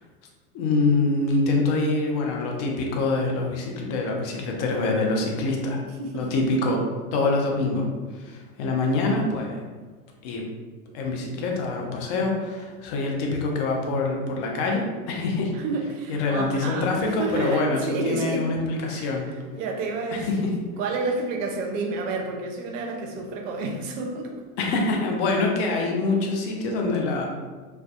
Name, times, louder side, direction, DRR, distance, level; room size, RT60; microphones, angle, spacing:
voice 1, 0.5-5.8 6.1-6.8 7.1-7.9 8.1-9.7 10.2-10.4 10.9-15.5 16.1-19.2 20.1-20.4 24.6-27.3, left 3 dB, 35° left, 0 dB, 0.4 m, -25 dB
voice 2, 6.0-6.3 15.5-18.5 18.9-20.3 20.8-24.4, right 3 dB, 55° right, 1 dB, 0.6 m, -30 dB
2.5 x 2.2 x 2.3 m, 1.4 s
hypercardioid pair, 100°, 46 cm